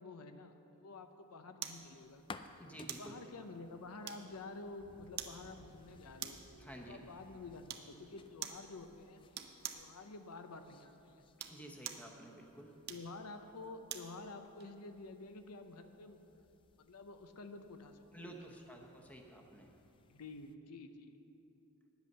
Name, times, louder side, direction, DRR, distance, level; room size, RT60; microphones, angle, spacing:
voice 1, 0.0-2.2 3.0-6.4 6.9-9.2 9.7-11.2 12.9-16.2 16.8-18.1 20.0-21.2, left 3 dB, 90° left, 7 dB, 0.7 m, -50 dB
sound 1, 1.6-20.6, left 4 dB, 20° left, 0.3 m, -61 dB
sound 2, 1.6-1.9 2.9-3.1 4.1-4.5 5.2-5.4 6.2-6.5 7.7-7.9 8.4-8.7 9.3-9.9 11.2-12.1 12.8-14.1 14.6-14.7, right 9 dB, 45° right, 0.6 m, -45 dB
voice 2, 2.4-3.3 6.6-7.0 11.4-12.8 18.1-19.8, right 1 dB, 5° left, 1 dB, 0.9 m, -52 dB
sound 3, 3.0-8.4, right 2 dB, 80° right, 1.3 m, -62 dB
10.0 x 8.1 x 6.7 m, 2.9 s
head